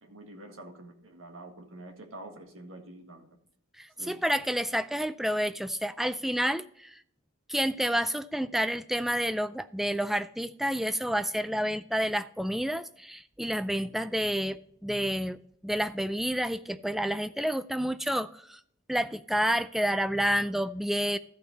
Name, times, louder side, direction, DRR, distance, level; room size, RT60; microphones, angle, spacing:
voice 1, 0.0-3.3 4.0-4.2, right 1 dB, 70° right, 3 dB, 1.7 m, -46 dB
voice 2, 3.8-7.0 7.5-15.4 15.6-18.6 18.9-21.2, equal, ahead, 12 dB, 0.3 m, -29 dB
13.5 x 5.6 x 4.0 m, 0.68 s
head